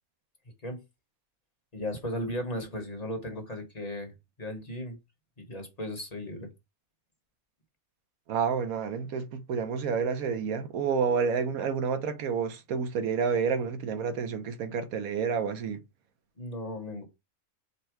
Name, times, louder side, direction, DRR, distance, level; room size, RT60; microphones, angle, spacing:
voice 1, 1.7-4.1 4.4-5.0 5.4-6.5 16.4-17.1, left 1 dB, 30° left, 1.0 m, -36 dB
voice 2, 8.3-15.8, right 6 dB, 80° right, 1.2 m, -29 dB
5.3 x 2.2 x 4.5 m
omnidirectional pair, 1.5 m